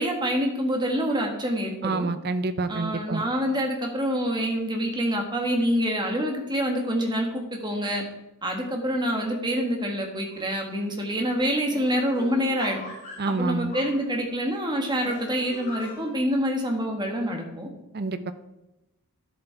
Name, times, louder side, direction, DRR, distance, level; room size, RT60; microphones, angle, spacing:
voice 1, 0.0-2.1 2.7-8.0 8.4-12.8 13.2-17.7, equal, 20° right, 2 dB, 1.5 m, -26 dB
voice 2, 1.8-3.2 13.2-13.7 17.9-18.3, right 3 dB, 45° right, 11 dB, 0.6 m, -28 dB
sound 1, 10.3-10.7 11.0-11.1 11.4-14.5 15.0-16.1, left 3 dB, 35° left, 2.2 m, -42 dB
10.0 x 7.6 x 4.5 m, 0.94 s
head